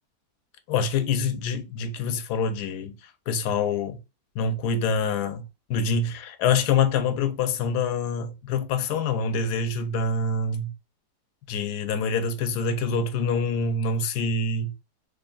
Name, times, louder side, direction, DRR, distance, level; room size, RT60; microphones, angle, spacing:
voice 1, 0.7-3.0 3.3-4.0 4.4-5.4 5.7-10.7 11.5-14.7, left 4 dB, 85° left, 1.1 m, -25 dB
3.3 x 2.3 x 3.7 m
omnidirectional pair, 1.7 m